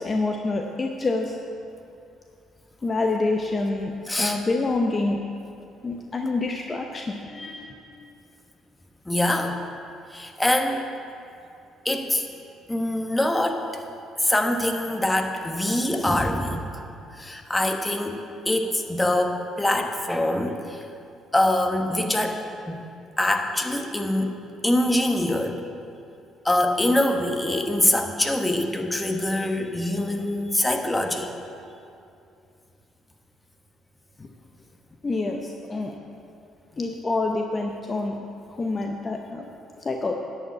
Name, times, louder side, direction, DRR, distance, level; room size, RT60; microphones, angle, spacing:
voice 1, 0.0-1.4 2.8-5.2 5.8-7.8 34.2-34.3 35.0-35.9 36.8-38.2 38.5-39.4 39.8-40.1, left 3 dB, 30° left, 2 dB, 0.8 m, -27 dB
voice 2, 4.1-4.4 9.0-9.6 10.1-10.9 11.8-12.2 12.7-13.6 14.2-16.8 17.1-18.2 18.4-20.8 21.3-22.8 23.2-24.4 24.6-25.6 26.4-31.3, left 1 dB, 10° left, 4 dB, 1.2 m, -24 dB
10.5 x 5.0 x 8.3 m, 2.6 s
supercardioid pair, 60°, 0 cm